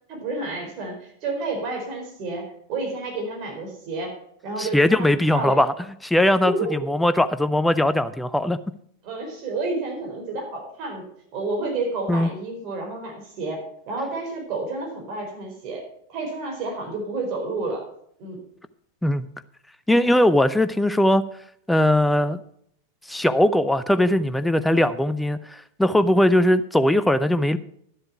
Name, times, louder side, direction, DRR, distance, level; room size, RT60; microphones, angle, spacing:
voice 1, 0.1-4.1 4.4-5.6 6.4-6.9 9.0-11.0 11.3-15.8 16.1-17.8 18.2-18.4 20.0-20.2, right 3 dB, 40° right, 1 dB, 4.5 m, -30 dB
voice 2, 4.6-5.7 6.0-6.5 6.9-8.6 12.1-12.3 19.0-19.3 19.9-21.2 21.7-22.4 23.1-27.6, left 1 dB, 5° left, 12 dB, 0.6 m, -20 dB
11.5 x 7.9 x 5.8 m, 0.68 s
figure-of-eight pair, 90°, 0 cm